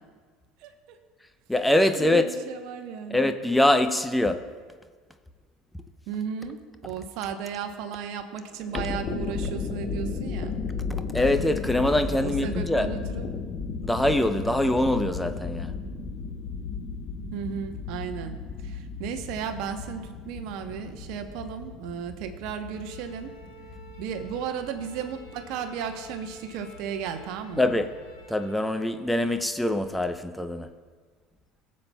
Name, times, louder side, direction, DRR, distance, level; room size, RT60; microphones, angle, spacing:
voice 1, 0.6-1.0 2.0-3.3 6.1-10.6 12.2-13.3 17.3-23.3 24.0-27.7, right 7 dB, 65° right, 7 dB, 0.9 m, -35 dB
voice 2, 1.5-2.3 3.1-4.4 11.1-12.9 13.8-15.7 27.6-27.9 28.3-30.7, left 1 dB, 5° left, 8 dB, 0.6 m, -23 dB
sound 1, 8.6-28.2, left 5 dB, 40° left, 1.1 m, -35 dB
Bowed string instrument, 22.7-29.1, equal, 80° left, 2.9 m, -50 dB
19.5 x 7.4 x 2.3 m, 1.5 s
hypercardioid pair, 70°, 0 cm